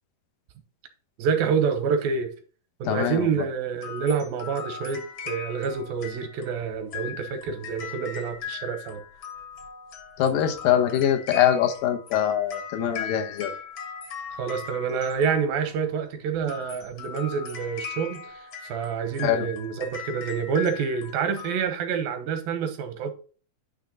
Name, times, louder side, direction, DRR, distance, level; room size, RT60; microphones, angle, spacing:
voice 1, 1.2-2.3 2.8-9.0 14.3-23.1, right 6 dB, 85° right, 2.8 m, -27 dB
voice 2, 2.8-3.4 10.2-13.5 19.2-19.5, left 10 dB, 80° left, 2.5 m, -23 dB
sound 1, 3.8-15.8 16.4-21.6, left 7 dB, 55° left, 1.5 m, -39 dB
9.3 x 3.3 x 5.1 m
omnidirectional pair, 4.0 m